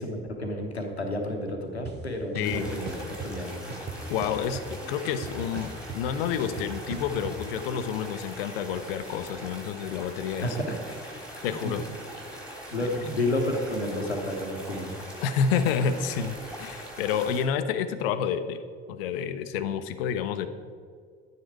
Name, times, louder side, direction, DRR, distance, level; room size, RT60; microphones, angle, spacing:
voice 1, 0.0-3.8 10.4-11.4 11.6-11.8 12.7-15.0, left 1 dB, 85° left, 3 dB, 1.1 m, -31 dB
sound 1, 1.8-1.9 2.3-3.3 3.7-4.8 5.0-7.3, right 5 dB, 35° right, 1.4 m, -38 dB
voice 2, 2.3-2.7 4.1-10.6 11.4-11.8 15.2-18.6 18.9-20.5, left 7 dB, 65° left, 11 dB, 0.8 m, -29 dB
sound 2, 2.4-17.4, right 1 dB, 5° right, 3.3 m, -41 dB
11.0 x 9.5 x 4.6 m, 2.1 s
figure-of-eight pair, 50°, 31 cm